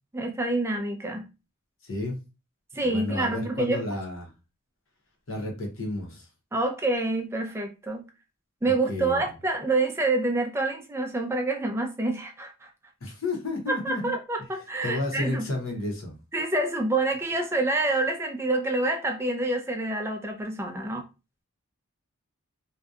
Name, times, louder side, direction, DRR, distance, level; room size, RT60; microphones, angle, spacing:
voice 1, 0.1-1.3 2.7-3.8 6.5-8.0 8.6-12.7 13.7-15.5 16.3-21.1, right 2 dB, 10° right, 0.3 m, -27 dB
voice 2, 1.8-2.2 2.8-4.3 5.3-6.3 8.7-9.2 13.0-14.1 14.8-16.2, left 2 dB, 60° left, 0.8 m, -32 dB
2.7 x 2.2 x 2.3 m
head